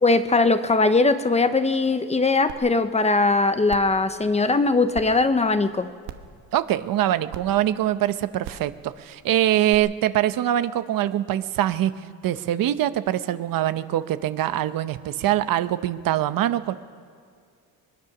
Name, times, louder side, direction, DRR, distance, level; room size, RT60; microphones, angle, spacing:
voice 1, 0.0-5.9, left 3 dB, 15° left, 10 dB, 0.8 m, -20 dB
sound 1, 2.5-2.6 3.1-3.2 3.7-3.9 4.9-5.0 6.0-6.3 7.3-7.4 8.4-8.7 9.7-9.8, right 12 dB, 90° right, 1.2 m, -37 dB
voice 2, 6.5-11.9 12.2-16.7, right 12 dB, 60° right, 12 dB, 0.9 m, -23 dB
21.0 x 21.0 x 6.0 m, 2.2 s
cardioid pair, 125°, 38 cm